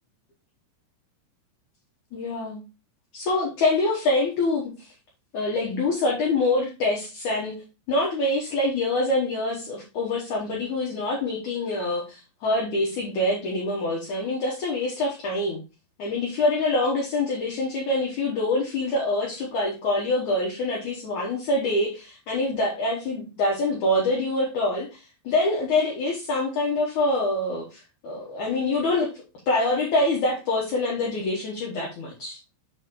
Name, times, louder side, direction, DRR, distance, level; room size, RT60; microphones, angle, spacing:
voice 1, 2.1-2.6 3.1-4.9 5.3-7.6 7.9-15.6 16.0-32.4, left 2 dB, 65° left, -2 dB, 1.9 m, -25 dB
6.7 x 4.2 x 3.7 m, 0.30 s
omnidirectional pair, 5.1 m